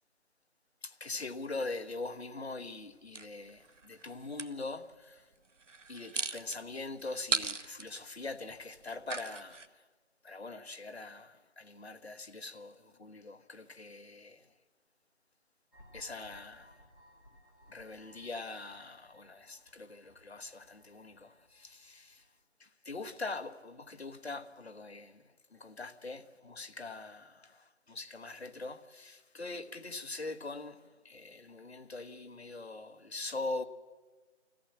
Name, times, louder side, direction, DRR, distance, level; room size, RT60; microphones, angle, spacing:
voice 1, 0.8-5.3 5.9-9.8 10.2-14.5 15.9-16.7 17.7-22.2 22.6-25.2 25.5-30.8 31.0-33.6, left 3 dB, 60° left, 1.3 m, -42 dB
sound 1, 3.1-4.5 5.6-9.7, right 4 dB, 80° right, 1.1 m, -38 dB
sound 2, 15.7-22.4, equal, 15° left, 2.2 m, -61 dB
25.5 x 14.5 x 7.6 m
figure-of-eight pair, 165°, 36 cm